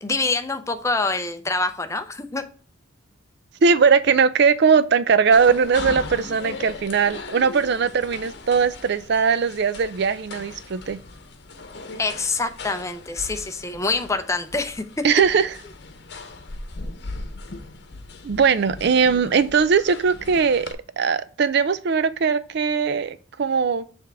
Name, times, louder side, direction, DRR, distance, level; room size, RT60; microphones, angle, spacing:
voice 1, 0.0-2.5 12.0-15.0, left 3 dB, 15° left, 0.5 m, -26 dB
voice 2, 3.6-11.0 15.0-15.5 18.2-20.7 21.0-23.9, right 5 dB, 55° right, 0.4 m, -20 dB
sound 1, 5.3-20.7, left 3 dB, 55° left, 0.9 m, -38 dB
7.1 x 3.4 x 4.6 m
head